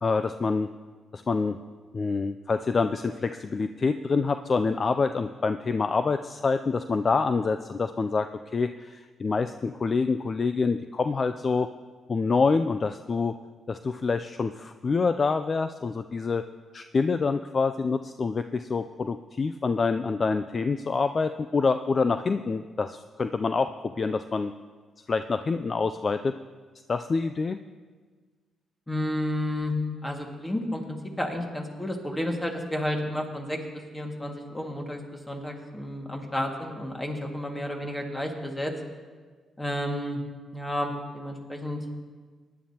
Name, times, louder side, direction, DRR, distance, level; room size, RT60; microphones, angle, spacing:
voice 1, 0.0-0.7 1.1-1.6 1.9-11.7 12.1-13.3 13.7-16.4 16.7-24.5 25.1-26.3 26.9-27.6, left 4 dB, 40° left, 9 dB, 0.3 m, -26 dB
voice 2, 28.9-29.7 30.0-33.6 33.9-35.0 35.3-38.7 39.6-40.2 40.5-41.8, left 1 dB, 15° left, 2 dB, 1.9 m, -31 dB
18.5 x 10.5 x 2.9 m, 1.5 s
cardioid pair, 85°, 0 cm